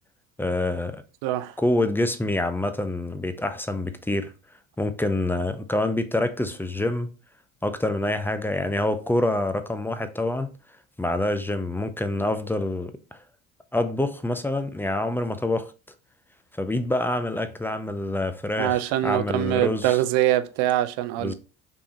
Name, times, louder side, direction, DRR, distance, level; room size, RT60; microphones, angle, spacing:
voice 1, 0.4-1.0 1.6-4.3 4.8-7.1 7.6-10.5 11.0-13.2 13.7-15.7 16.6-20.0 21.2-21.3, left 1 dB, 5° left, 0.5 m, -26 dB
voice 2, 1.2-1.5 18.6-21.3, right 13 dB, 65° right, 0.6 m, -23 dB
5.1 x 3.4 x 2.9 m
hypercardioid pair, 70°, 40 cm